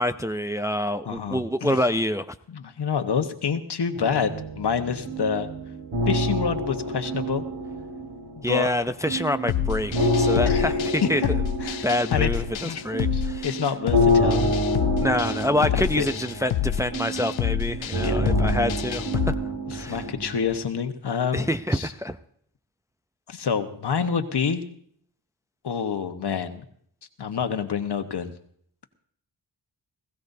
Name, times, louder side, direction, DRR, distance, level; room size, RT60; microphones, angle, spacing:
voice 1, 0.0-2.3 8.4-11.2 11.8-13.5 15.0-20.0 21.3-22.2, left 1 dB, 5° right, 9 dB, 0.5 m, -26 dB
voice 2, 1.1-1.8 2.5-5.5 6.1-7.4 8.4-8.7 10.4-10.7 11.6-12.3 12.6-12.8 13.1-14.5 16.0-16.1 18.0-18.3 19.7-21.9 23.3-24.6 25.6-26.6 27.2-28.3, left 6 dB, 65° left, 7 dB, 1.3 m, -27 dB
sound 1, 3.9-8.7 9.0-20.6, equal, 80° right, 5.6 m, -27 dB
sound 2, 9.5-19.3, left 11 dB, 90° left, 0.7 m, -28 dB
20.0 x 16.0 x 2.7 m, 0.63 s
cardioid pair, 65°, 44 cm